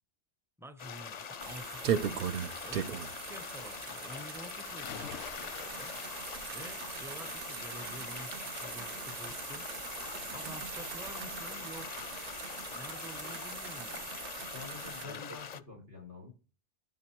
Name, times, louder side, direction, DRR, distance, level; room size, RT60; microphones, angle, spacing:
voice 1, 0.6-2.2 2.6-6.2 6.5-9.7 10.3-12.0 12.7-14.1 15.0-15.4, right 1 dB, 5° right, 0.5 m, -49 dB
sound 1, 0.8-15.6, left 7 dB, 45° left, 0.6 m, -43 dB
sound 2, 1.4-15.1, right 8 dB, 60° right, 0.8 m, -40 dB
sound 3, 4.7-6.8 7.2-7.6 9.0-9.1 9.5-9.6, left 9 dB, 85° left, 0.9 m, -46 dB
voice 2, 14.5-16.3, left 4 dB, 85° right, 5.2 m, -47 dB
13.0 x 7.6 x 3.0 m
omnidirectional pair, 1.1 m